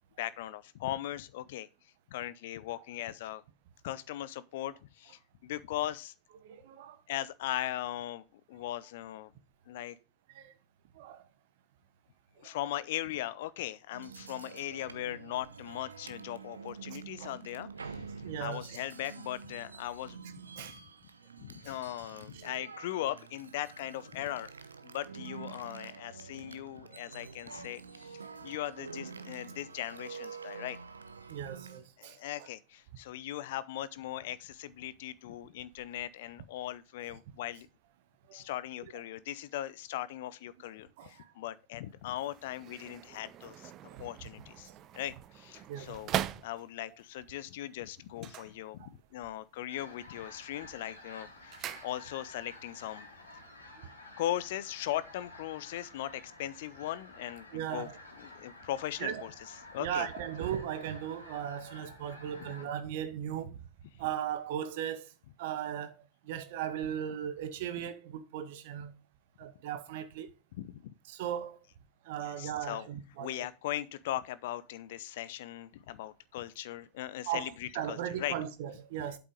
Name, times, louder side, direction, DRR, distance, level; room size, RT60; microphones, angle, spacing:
voice 1, 0.2-1.7 2.1-3.4 3.8-6.1 7.1-9.3 9.7-10.0 12.4-20.2 20.6-20.7 21.4-24.5 24.8-30.8 32.0-37.7 38.3-43.7 44.0-44.7 44.9-53.1 54.2-57.9 58.2-60.1 62.4-62.5 70.6-70.9 72.2-72.9 73.2-78.3, left 13 dB, 55° left, 0.7 m, -39 dB
voice 2, 6.4-7.0 10.3-10.5 10.9-11.2 12.4-12.6 17.2-17.3 18.2-18.8 20.6-20.8 31.3-32.2 38.3-38.4 41.0-41.3 43.9-44.0 44.6-44.7 45.7-45.9 48.8-48.9 57.5-58.0 59.0-59.2 59.8-63.6 64.0-65.1 65.4-65.9 66.2-69.0 69.4-70.3 71.1-71.6 72.0-73.3 77.3-79.2, right 9 dB, 50° right, 1.2 m, -37 dB
sound 1, 13.9-31.8, right 5 dB, 75° right, 0.8 m, -47 dB
sound 2, 42.0-47.0 48.1-49.2 49.5-50.0 50.4-52.4 52.7-52.8, right 12 dB, 35° right, 0.5 m, -41 dB
sound 3, 49.7-62.7, left 2 dB, 75° left, 2.6 m, -52 dB
8.2 x 5.9 x 5.2 m
figure-of-eight pair, 90°, 0 cm